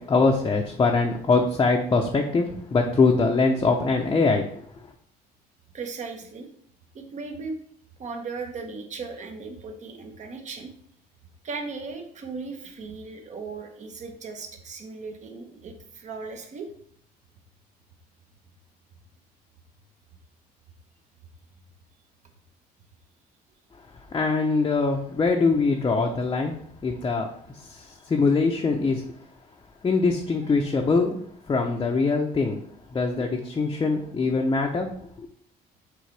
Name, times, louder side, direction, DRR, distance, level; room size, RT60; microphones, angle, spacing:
voice 1, 0.0-4.5 24.1-26.5 26.8-27.3 27.5-29.0 29.8-31.2 31.5-32.6 32.9-34.9 35.2-35.3, left 4 dB, 25° left, 0 dB, 0.7 m, -23 dB
voice 2, 5.7-6.5 6.9-7.6 8.0-10.7 11.4-16.7 30.4-30.5, right 4 dB, 45° right, 5 dB, 1.2 m, -37 dB
6.5 x 4.5 x 3.3 m, 0.63 s
cardioid pair, 110°, 17 cm